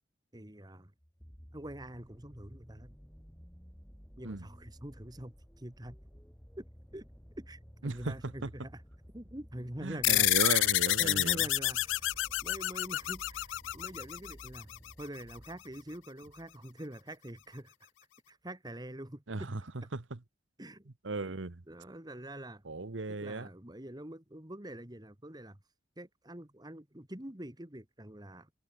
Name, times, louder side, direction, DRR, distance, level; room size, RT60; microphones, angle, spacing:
voice 1, 0.3-0.9 1.5-3.0 4.2-6.0 6.6-6.7 6.9-7.1 7.4-8.8 9.1-10.3 10.9-17.9 18.3-19.5 20.6-20.9 21.7-22.6 23.1-25.6 26.0-28.5, right 1 dB, 20° right, 1.9 m, -45 dB
sound 1, 1.0-16.6 17.4-17.5, equal, 5° left, 2.5 m, -54 dB
voice 2, 7.8-8.5 9.8-11.5 19.3-19.6 19.9-20.2 21.0-21.6 22.6-23.5, right 3 dB, 75° right, 1.1 m, -36 dB
sound 2, 10.0-14.9, left 18 dB, 75° left, 0.3 m, -29 dB
head